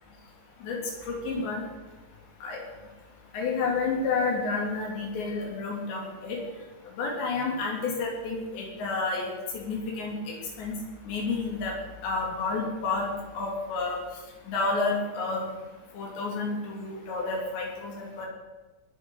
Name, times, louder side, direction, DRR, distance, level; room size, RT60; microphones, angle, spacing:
voice 1, 1.1-1.7 2.4-2.6 3.3-6.4 7.0-10.8 11.0-11.7 12.0-14.0 14.5-15.4 15.9-18.3, left 3 dB, 90° left, -1 dB, 5.4 m, -30 dB
20.0 x 7.1 x 6.5 m, 1.2 s
omnidirectional pair, 4.9 m